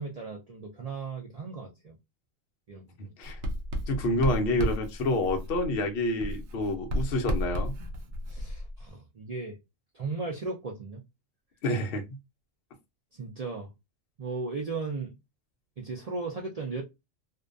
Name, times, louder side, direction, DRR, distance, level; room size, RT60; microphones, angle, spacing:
voice 1, 0.0-2.0 2.7-3.1 8.3-9.6 9.9-11.0 13.2-13.7 14.2-15.2 15.8-16.8, right 4 dB, 85° right, 0.3 m, -36 dB
voice 2, 3.0-3.4 3.9-7.8 11.6-12.0, left 1 dB, 60° left, 0.7 m, -28 dB
Writing, 3.2-5.9 6.2-8.9, equal, 65° right, 0.8 m, -33 dB
2.5 x 2.2 x 2.4 m
omnidirectional pair, 1.3 m